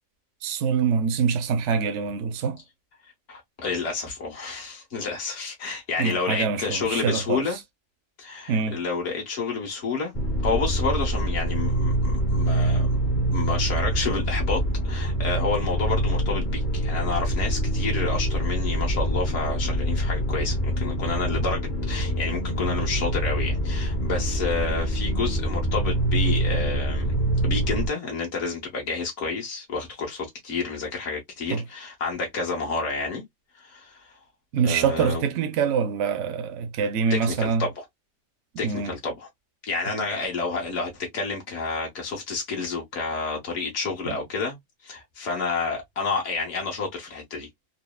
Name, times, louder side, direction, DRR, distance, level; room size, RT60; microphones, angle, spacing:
voice 1, 0.4-2.6 6.0-7.6 8.5-8.8 31.5-31.6 34.5-37.7 38.6-38.9 44.0-44.2, right 6 dB, 65° right, 0.9 m, -25 dB
voice 2, 3.3-7.6 8.2-10.1 10.4-13.0 13.3-27.1 27.4-33.2 33.6-34.2 34.6-35.2 37.1-37.7 38.6-39.3 39.6-44.6 44.8-47.5, left 4 dB, 60° left, 1.6 m, -29 dB
sound 1, 10.1-27.9, right 1 dB, 35° left, 0.9 m, -25 dB
4.0 x 2.0 x 2.2 m
omnidirectional pair, 1.4 m